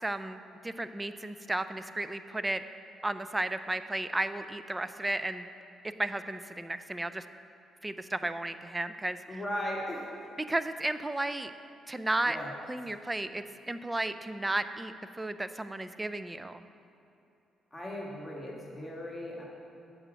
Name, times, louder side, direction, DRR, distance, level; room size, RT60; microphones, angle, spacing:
voice 1, 0.0-2.6 3.0-5.5 6.0-7.2 7.8-9.4 10.5-11.5 11.9-12.4 12.7-16.6, right 2 dB, 15° right, 11 dB, 0.3 m, -34 dB
voice 2, 9.3-10.2 12.3-12.5 17.7-19.4, equal, 15° left, -4 dB, 1.6 m, -37 dB
8.1 x 4.9 x 6.2 m, 2.9 s
cardioid pair, 90°, 0 cm